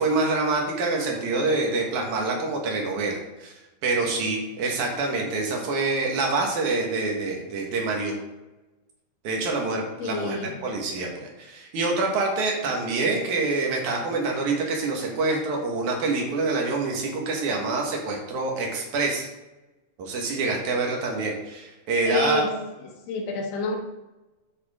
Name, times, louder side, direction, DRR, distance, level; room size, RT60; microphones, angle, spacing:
voice 1, 0.0-3.5 3.8-8.2 9.2-19.3 20.0-22.4, right 3 dB, 60° right, 0 dB, 2.6 m, -26 dB
voice 2, 10.0-10.5 22.1-22.5 23.1-23.8, left 3 dB, 85° left, 1 dB, 3.2 m, -27 dB
11.5 x 4.9 x 3.7 m, 1.1 s
omnidirectional pair, 4.4 m